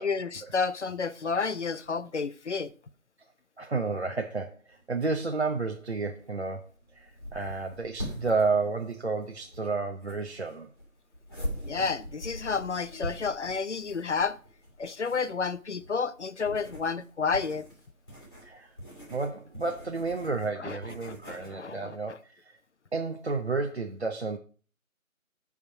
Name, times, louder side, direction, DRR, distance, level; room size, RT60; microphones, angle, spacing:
voice 1, 0.0-2.7 11.6-14.4 14.8-17.7 20.6-20.8 21.0-22.2, left 5 dB, 55° left, 0.6 m, -31 dB
voice 2, 3.6-10.7 18.4-18.7 19.1-22.5 22.9-24.4, right 4 dB, 50° right, 0.7 m, -31 dB
sound 1, 4.7-21.5, equal, 15° left, 1.9 m, -43 dB
9.7 x 3.6 x 5.7 m
figure-of-eight pair, 180°, 41 cm